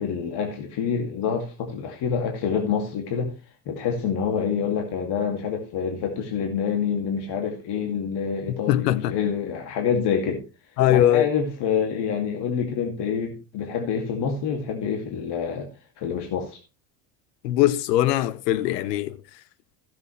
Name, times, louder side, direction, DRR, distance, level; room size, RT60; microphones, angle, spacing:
voice 1, 0.0-3.3 3.7-10.4 10.9-16.6, left 6 dB, 55° left, 2.4 m, -27 dB
voice 2, 8.5-9.1 10.8-11.3 17.4-19.2, left 13 dB, 85° left, 0.9 m, -21 dB
15.5 x 7.5 x 3.2 m
hypercardioid pair, 75°, 47 cm